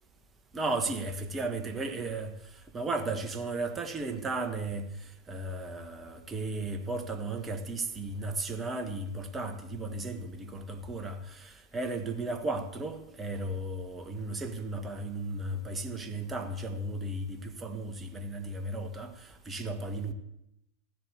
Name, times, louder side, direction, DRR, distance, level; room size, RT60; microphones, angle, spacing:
voice 1, 0.5-20.1, right 2 dB, 15° right, 1.5 m, -35 dB
14.5 x 7.6 x 8.3 m
figure-of-eight pair, 90°, 0 cm